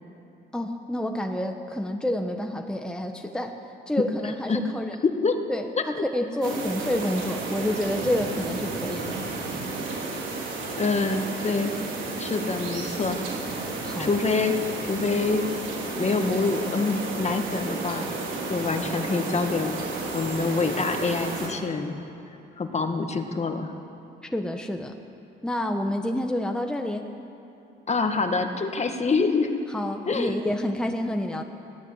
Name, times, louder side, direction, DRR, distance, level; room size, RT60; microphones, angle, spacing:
voice 1, 0.5-3.6 3.9-5.0 5.5-9.2 13.8-14.1 24.3-25.0 25.4-27.1 29.7-31.4, left 1 dB, 5° left, 4 dB, 1.3 m, -28 dB
voice 2, 5.0-5.4 5.8-6.0 6.5-6.6 10.8-11.8 12.2-13.2 14.0-15.5 16.0-18.1 18.5-19.7 20.1-21.9 22.6-23.7 27.9-29.6 30.1-30.4, left 4 dB, 35° left, 6 dB, 1.9 m, -26 dB
sound 1, 6.4-21.5, right 3 dB, 75° right, 4.5 m, -32 dB
22.0 x 16.0 x 8.2 m, 2.8 s
cardioid pair, 90°, 20 cm